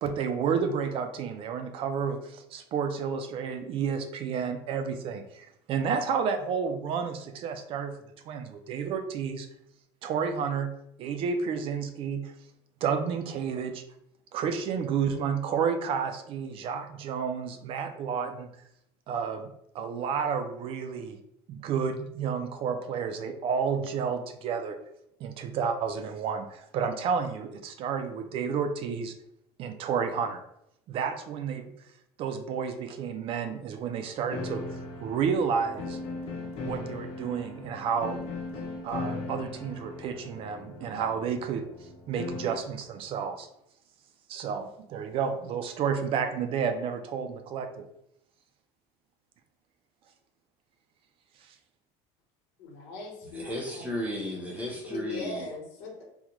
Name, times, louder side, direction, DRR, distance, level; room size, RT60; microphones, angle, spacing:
voice 1, 0.0-8.0 8.3-9.5 10.0-10.7 11.0-12.3 12.8-13.8 14.3-18.5 19.1-21.2 21.5-24.8 25.2-29.1 29.6-30.4 30.9-31.7 32.2-34.6 35.0-36.0 36.6-38.2 38.8-41.6 42.1-43.5 44.3-47.9 51.5-51.6, right 6 dB, 45° right, 7 dB, 0.4 m, -31 dB
sound 1, 34.3-42.7, left 3 dB, 50° left, 0.7 m, -38 dB
voice 2, 52.6-53.8 54.8-56.0, left 3 dB, 90° left, 0 dB, 1.1 m, -39 dB
voice 3, 53.2-55.5, equal, 10° right, -2 dB, 0.8 m, -34 dB
3.7 x 2.1 x 3.0 m, 0.77 s
cardioid pair, 150°, 13 cm